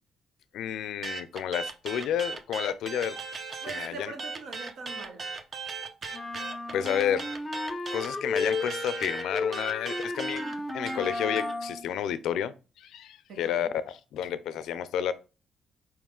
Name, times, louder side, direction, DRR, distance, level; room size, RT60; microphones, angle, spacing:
voice 1, 0.5-3.2 3.6-4.1 6.0-6.2 6.7-7.3 7.9-10.4 10.7-15.1, left 9 dB, 80° left, 0.4 m, -31 dB
sound 1, 1.0-3.9 4.2-11.5, right 4 dB, 40° right, 0.7 m, -37 dB
voice 2, 3.6-5.4 13.3-13.7, right 4 dB, 75° right, 1.1 m, -42 dB
sound 2, 6.1-11.9, left 3 dB, 25° left, 0.5 m, -33 dB
4.6 x 3.1 x 3.6 m
cardioid pair, 90°, 0 cm